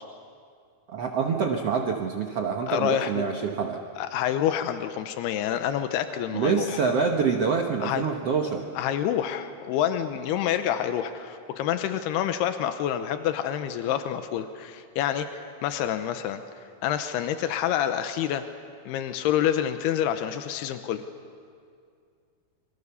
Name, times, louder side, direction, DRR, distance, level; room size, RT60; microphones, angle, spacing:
voice 1, 0.9-3.8 6.3-8.7, right 5 dB, 75° right, 2 dB, 1.4 m, -26 dB
voice 2, 2.7-3.3 4.0-6.8 7.8-8.1 8.8-16.4 16.8-18.5 18.9-21.0, left 10 dB, 90° left, 9 dB, 2.9 m, -27 dB
28.5 x 23.5 x 7.0 m, 2.3 s
omnidirectional pair, 4.6 m